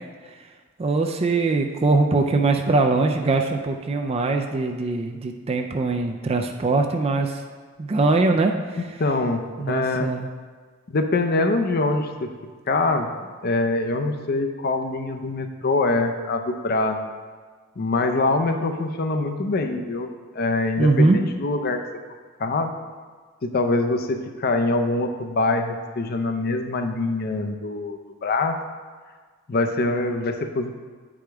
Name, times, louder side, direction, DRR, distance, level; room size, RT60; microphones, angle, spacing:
voice 1, 0.8-7.4 7.8-8.5 9.6-10.3 20.8-21.2, right 3 dB, 30° right, 4 dB, 0.4 m, -21 dB
voice 2, 9.0-10.1 10.9-12.3 12.7-13.1 13.4-17.0 17.8-21.8 22.4-22.7 23.4-28.6 29.5-30.8, left 2 dB, 50° left, 6 dB, 0.5 m, -24 dB
8.7 x 4.9 x 3.5 m, 1.5 s
head